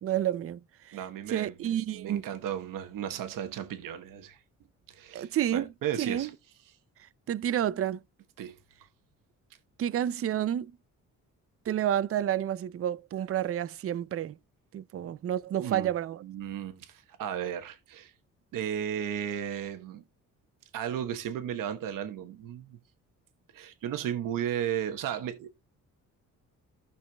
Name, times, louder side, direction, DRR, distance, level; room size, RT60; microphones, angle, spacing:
voice 1, 0.0-0.6 0.9-1.0 1.3-2.2 5.1-5.7 6.0-6.3 7.3-8.0 9.8-10.7 11.7-14.4 14.7-16.2, right 11 dB, 45° right, 0.5 m, -29 dB
voice 2, 0.9-4.4 4.9-6.3 8.4-8.6 15.6-15.9 16.2-18.1 18.5-20.0 20.7-22.8 23.5-25.6, right 9 dB, 90° right, 1.1 m, -35 dB
15.5 x 5.7 x 2.2 m
cardioid pair, 90°, 32 cm